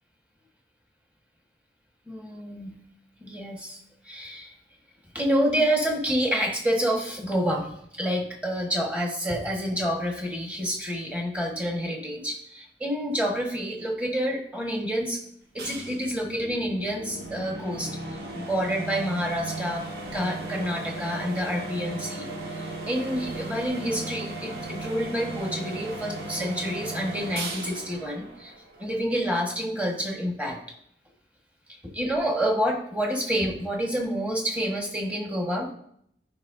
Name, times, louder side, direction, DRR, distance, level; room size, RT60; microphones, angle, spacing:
voice 1, 2.1-2.8 3.2-3.8 4.0-4.5 5.1-7.7 8.0-15.2 15.5-22.3 22.6-28.5 28.8-30.6 31.9-35.7, equal, 10° right, 0 dB, 1.5 m, -28 dB
sound 1, 15.6-29.1, right 2 dB, 65° right, 1.5 m, -36 dB
14.0 x 5.3 x 2.7 m, 0.70 s
head